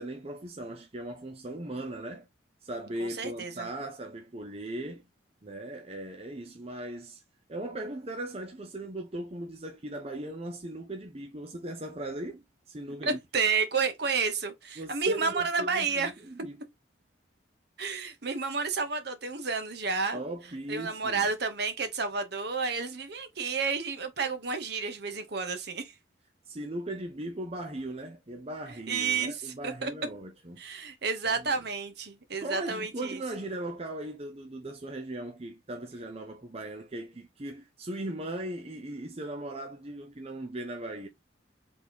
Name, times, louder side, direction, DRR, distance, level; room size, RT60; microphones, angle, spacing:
voice 1, 0.0-2.3 2.6-5.0 5.4-7.2 7.5-13.2 14.8-16.6 20.1-21.3 26.5-30.6 31.3-31.5 32.4-41.1, right 1 dB, 30° right, 0.7 m, -38 dB
voice 2, 3.0-3.7 13.0-16.1 17.8-20.2 20.7-25.9 28.9-29.9 30.6-33.2, right 4 dB, 60° right, 1.1 m, -31 dB
4.1 x 3.6 x 2.9 m
head